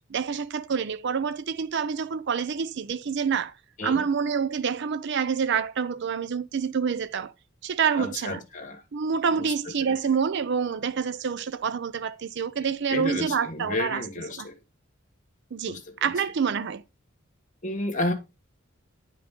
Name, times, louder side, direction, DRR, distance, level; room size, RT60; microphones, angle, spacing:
voice 1, 0.1-3.5 3.8-7.3 7.6-8.4 8.9-14.0 14.4-14.5 15.5-16.8, right 6 dB, 60° right, 0.5 m, -27 dB
voice 2, 8.0-8.8 9.3-10.0 12.9-14.6 15.6-16.1 17.6-18.1, left 2 dB, 40° left, 1.3 m, -32 dB
9.6 x 4.9 x 3.6 m
head